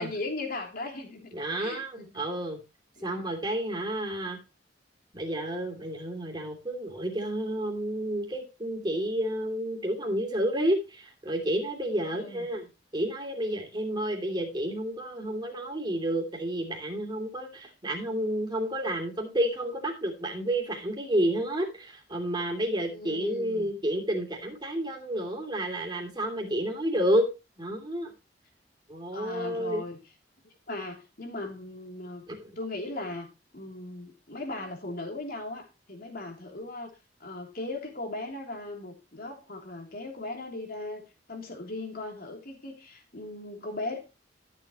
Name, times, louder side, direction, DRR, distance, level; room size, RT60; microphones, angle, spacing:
voice 1, 0.0-2.2 3.0-3.1 12.1-12.5 22.8-23.7 29.1-30.0 30.4-32.2 32.6-33.3 33.5-36.9 37.2-44.0, left 2 dB, 55° left, 2 dB, 3.3 m, -38 dB
voice 2, 1.3-2.6 3.0-4.4 5.1-27.3 27.6-28.1 28.9-29.8 32.3-32.5, right 1 dB, 25° right, 2 dB, 2.9 m, -30 dB
13.5 x 7.5 x 3.1 m, 0.27 s
head